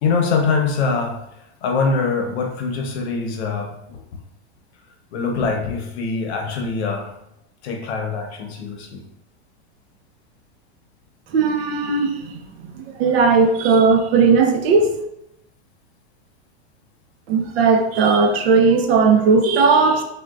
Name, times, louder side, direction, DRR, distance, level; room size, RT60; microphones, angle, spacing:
voice 1, 0.0-1.2 1.6-4.0 5.1-7.1 7.6-9.0, left 4 dB, 75° left, 3 dB, 0.8 m, -23 dB
voice 2, 11.3-15.0 17.3-20.0, right 4 dB, 65° right, 5 dB, 0.6 m, -17 dB
3.6 x 2.3 x 2.3 m, 0.80 s
supercardioid pair, 165°, 33 cm